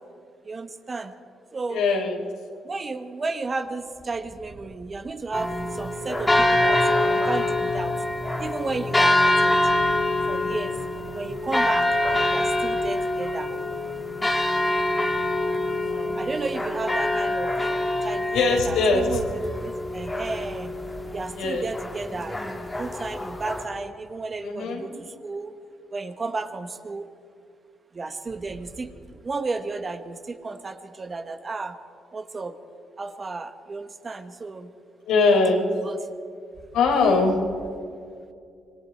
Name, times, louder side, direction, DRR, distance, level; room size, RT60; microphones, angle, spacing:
voice 1, 0.4-1.1 1.5-1.8 2.6-7.9 8.4-9.5 10.3-10.8 11.1-11.9 12.3-13.5 16.2-17.5 18.0-20.7 21.1-24.9 25.2-25.5 25.9-27.1 27.9-28.9 29.2-31.8 32.1-32.5 33.0-34.7 35.8-36.0, right 3 dB, 35° right, 7 dB, 1.4 m, -33 dB
voice 2, 1.7-2.2 15.8-16.1 18.3-19.2 21.4-21.7 24.4-24.9 35.1-35.7 36.7-37.4, left 3 dB, 90° left, 1 dB, 4.0 m, -21 dB
sound 1, 5.3-23.6, left 1 dB, 15° left, 2.2 m, -25 dB
26.5 x 22.5 x 4.5 m, 2.4 s
cardioid pair, 90°, 0 cm